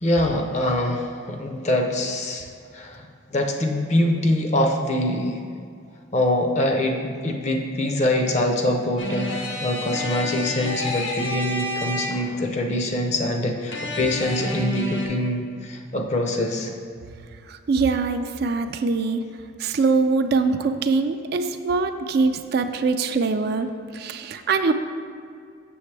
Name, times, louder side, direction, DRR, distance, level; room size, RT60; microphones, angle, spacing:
voice 1, 0.0-2.5 2.7-3.0 3.3-5.4 6.1-9.3 9.6-16.7, left 1 dB, 35° left, 3 dB, 0.6 m, -24 dB
sound 1, 9.0-12.5 13.7-15.1, left 1 dB, 70° left, 0.9 m, -29 dB
voice 2, 17.7-19.2 19.6-24.7, right 4 dB, 55° right, 8 dB, 0.3 m, -23 dB
7.0 x 6.6 x 3.3 m, 2.2 s
head